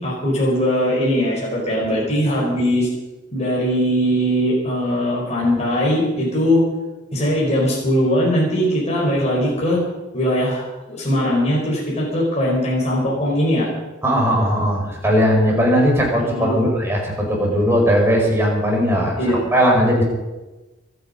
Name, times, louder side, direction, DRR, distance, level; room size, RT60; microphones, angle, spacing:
voice 1, 0.0-2.9 3.3-6.6 7.1-9.8 10.1-10.6 10.9-13.7 16.2-16.6 19.2-19.4, equal, 35° left, -4 dB, 4.6 m, -20 dB
voice 2, 14.0-19.2 19.5-20.0, equal, 10° right, -2 dB, 5.2 m, -18 dB
25.5 x 9.7 x 5.5 m, 1.1 s
head